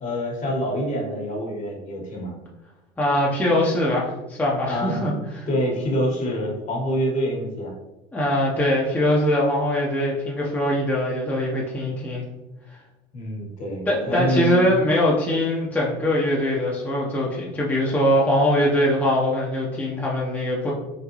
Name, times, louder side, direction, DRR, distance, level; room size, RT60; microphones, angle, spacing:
voice 1, 0.0-2.3 4.7-5.0 5.5-7.7 13.1-14.7, equal, 45° left, -1 dB, 1.3 m, -26 dB
voice 2, 3.0-5.5 8.1-12.2 13.9-20.7, left 1 dB, 10° left, -5 dB, 0.8 m, -22 dB
3.8 x 2.2 x 3.0 m, 1.0 s
supercardioid pair, 90°, 18 cm